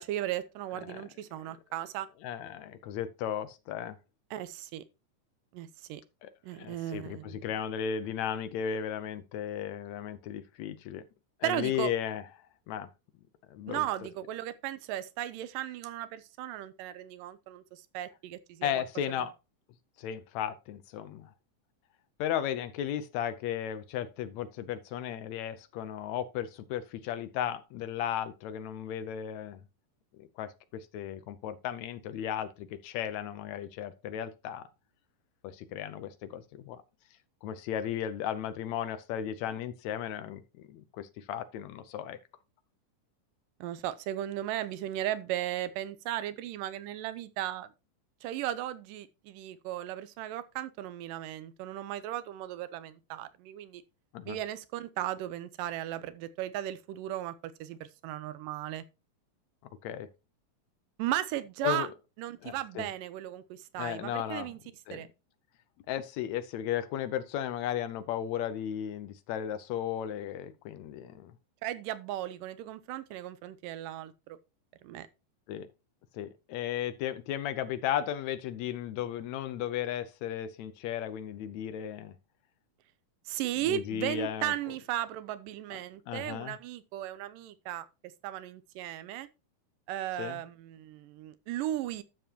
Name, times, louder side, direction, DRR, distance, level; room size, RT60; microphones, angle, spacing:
voice 1, 0.0-2.1 4.3-4.8 5.5-6.0 6.4-7.5 11.4-11.9 13.7-18.8 43.6-47.7 48.2-53.8 54.3-58.8 61.0-61.9 62.2-64.6 64.9-65.1 71.6-74.4 74.8-75.1 83.3-89.3 89.9-92.0, right 13 dB, 90° right, 2.3 m, -36 dB
voice 2, 2.2-4.0 6.2-11.0 11.4-12.2 12.7-12.9 13.5-13.9 18.6-19.3 20.0-21.3 22.2-29.6 30.2-34.6 35.4-36.8 37.4-42.2 54.1-54.4 59.8-60.1 61.6-61.9 62.4-62.9 63.8-64.5 64.9-65.0 65.9-71.3 75.5-75.7 76.1-82.1 83.7-84.5 86.1-86.6 90.2-90.4, left 10 dB, 75° left, 1.7 m, -35 dB
12.5 x 6.9 x 2.9 m
omnidirectional pair, 3.8 m